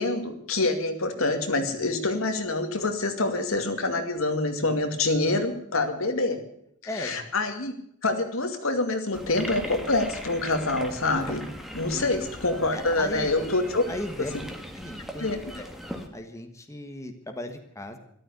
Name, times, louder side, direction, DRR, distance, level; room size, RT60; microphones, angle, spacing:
voice 1, 0.0-6.4 6.9-7.7 8.0-11.4 11.7-13.8 15.2-15.5, left 2 dB, 75° left, 5 dB, 2.4 m, -26 dB
voice 2, 6.8-7.2 11.9-12.3 12.7-13.3 13.9-14.3 14.8-15.3 15.6-15.7 16.1-18.0, left 1 dB, 15° left, 5 dB, 1.5 m, -37 dB
sound 1, 9.1-16.1, equal, ahead, 1.9 m, -39 dB
13.5 x 12.5 x 8.1 m, 0.70 s
head